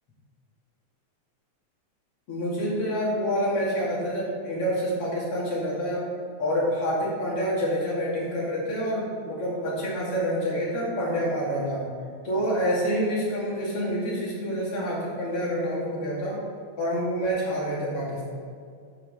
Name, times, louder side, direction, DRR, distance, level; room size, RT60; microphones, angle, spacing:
voice 1, 2.3-6.0 6.4-11.8 12.2-16.4 16.8-18.3, equal, 50° left, -6 dB, 3.3 m, -27 dB
7.7 x 5.6 x 6.9 m, 2.3 s
omnidirectional pair, 3.5 m